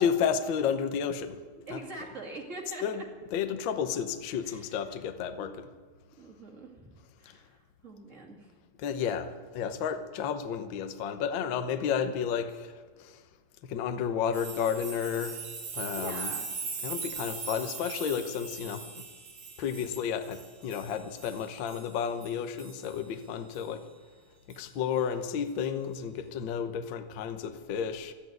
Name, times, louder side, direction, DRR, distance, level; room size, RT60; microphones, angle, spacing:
voice 1, 0.0-1.4 1.7-1.8 2.8-5.7 8.8-12.7 13.0-13.2 13.6-15.4 15.7-16.3 16.8-18.8 19.6-23.8 24.5-28.1, left 7 dB, 65° left, 8 dB, 1.2 m, -32 dB
voice 2, 1.7-3.0 4.4-4.9 5.4-5.7 6.2-8.5 16.0-16.5, right 2 dB, 25° right, -1 dB, 2.6 m, -44 dB
sound 1, 14.3-23.0 23.5-23.7 24.5-24.6, right 5 dB, 55° right, 3.2 m, -40 dB
13.0 x 10.5 x 9.5 m, 1.5 s
omnidirectional pair, 3.3 m